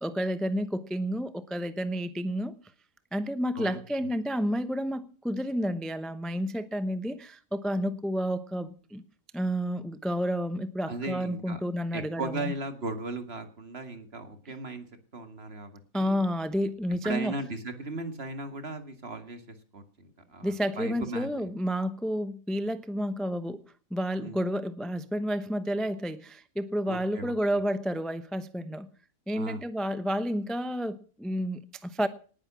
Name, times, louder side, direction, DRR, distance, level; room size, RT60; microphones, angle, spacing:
voice 1, 0.0-2.6 3.1-9.0 9.3-12.5 15.9-17.3 20.4-23.6 23.9-28.9 29.3-32.1, equal, ahead, 12 dB, 0.7 m, -30 dB
voice 2, 10.9-11.6 11.9-14.9 15.1-16.2 17.0-21.5 24.2-24.4 26.9-27.3 29.3-29.6, right 2 dB, 45° right, 9 dB, 2.2 m, -37 dB
19.0 x 9.8 x 6.1 m, 0.41 s
omnidirectional pair, 1.5 m